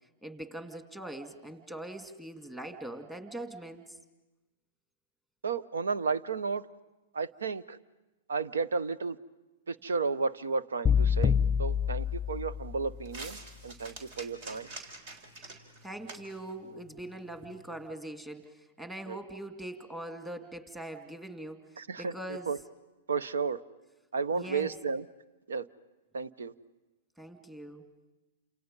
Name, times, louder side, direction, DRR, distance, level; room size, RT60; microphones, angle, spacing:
voice 1, 0.2-4.0 15.8-22.5 24.3-24.7 27.2-27.8, right 1 dB, 10° right, 5 dB, 2.3 m, -42 dB
voice 2, 5.4-6.6 7.1-7.8 8.3-9.2 9.7-11.3 11.6-13.4 13.6-14.7 19.1-19.2 21.8-22.6 23.1-23.6 24.1-25.0 25.5-25.7 26.1-26.5, right 4 dB, 85° right, 17 dB, 0.8 m, -33 dB
sound 1, 10.9-13.0, left 7 dB, 10° left, 0.9 m, -27 dB
sound 2, 11.0-17.9, right 2 dB, 55° right, 3.7 m, -49 dB
29.0 x 27.5 x 5.4 m, 1.1 s
hypercardioid pair, 120°, 0 cm